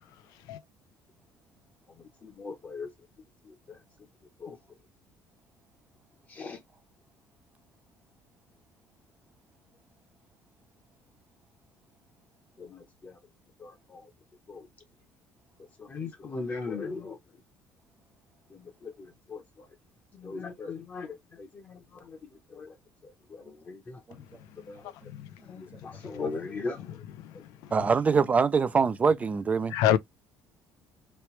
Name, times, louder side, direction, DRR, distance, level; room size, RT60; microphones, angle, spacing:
voice 1, 0.5-0.6 25.0-25.3 26.0-26.2 27.2-27.4 27.6-27.7 29.7-30.0, left 11 dB, 85° left, 0.5 m, -27 dB
voice 2, 2.0-2.9 3.5-3.8 4.4-4.6 6.3-6.6 12.6-13.2 13.6-14.1 14.5-14.7 15.8-17.2 18.5-19.7 20.1-22.8 23.0-24.0 24.7-24.9 25.4-26.8 27.3-27.4, left 4 dB, 30° left, 0.9 m, -39 dB
voice 3, 27.7-29.7, right 5 dB, 25° right, 0.4 m, -24 dB
3.1 x 3.0 x 3.1 m
cardioid pair, 145°, 6 cm